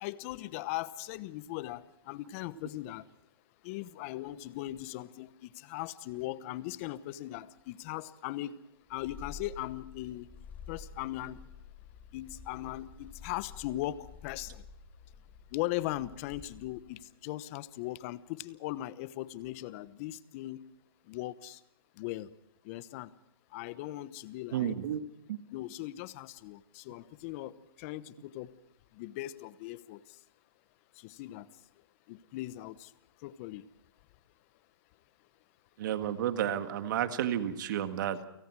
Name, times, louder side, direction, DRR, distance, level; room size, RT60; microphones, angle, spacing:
voice 1, 0.0-3.0 3.6-5.3 5.5-8.6 8.9-10.3 10.7-11.4 12.1-14.6 15.5-20.6 21.1-21.6 22.0-22.3 22.7-23.1 23.5-24.7 25.5-27.5 27.8-28.5 29.0-30.0 31.0-31.5 32.1-32.9 33.2-33.6, left 16 dB, 35° left, 16 dB, 1.0 m, -39 dB
Purr, 8.9-17.0, left 5 dB, 15° left, 1.9 m, -50 dB
voice 2, 24.5-25.0 25.3-25.4 35.8-38.2, right 10 dB, 50° right, 9 dB, 1.9 m, -31 dB
29.0 x 18.5 x 4.8 m, 0.82 s
hypercardioid pair, 145°, 13 cm